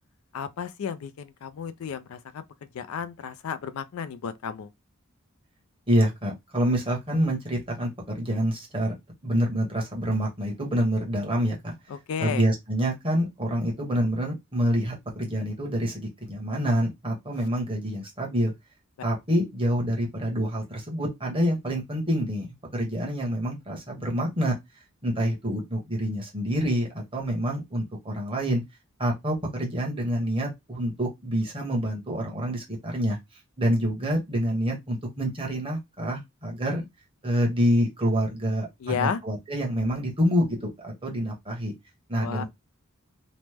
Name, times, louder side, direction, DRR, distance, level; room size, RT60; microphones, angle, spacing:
voice 1, 0.3-2.4 2.7-4.7 11.9-12.4 38.8-39.2 42.2-42.4, left 7 dB, 75° left, 0.4 m, -32 dB
voice 2, 5.9-7.9 8.1-8.9 9.2-11.7 12.2-18.5 19.0-22.5 22.7-24.5 25.0-28.6 29.0-33.2 33.6-36.8 37.2-41.7 42.1-42.4, equal, 25° right, 1.1 m, -27 dB
3.0 x 2.1 x 3.3 m
head